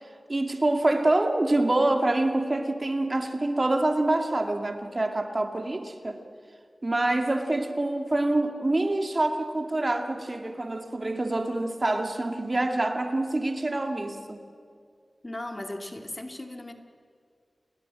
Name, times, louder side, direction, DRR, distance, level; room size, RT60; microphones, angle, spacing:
voice 1, 0.3-6.2 6.8-14.4, right 2 dB, 40° right, 5 dB, 2.3 m, -26 dB
voice 2, 15.2-16.7, left 1 dB, 30° left, 5 dB, 2.5 m, -37 dB
29.5 x 21.0 x 7.7 m, 2.2 s
cardioid pair, 50°, 0 cm